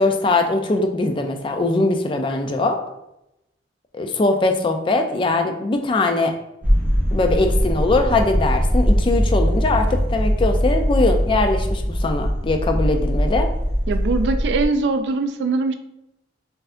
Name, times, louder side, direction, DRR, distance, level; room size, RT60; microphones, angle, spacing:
voice 1, 0.0-2.8 3.9-6.3 7.1-13.5, left 2 dB, 25° left, 5 dB, 0.3 m, -21 dB
sound 1, 6.6-14.6, equal, 10° right, 0.7 m, -21 dB
voice 2, 13.9-15.7, right 3 dB, 65° right, 9 dB, 0.3 m, -22 dB
4.1 x 2.6 x 2.5 m, 0.86 s
head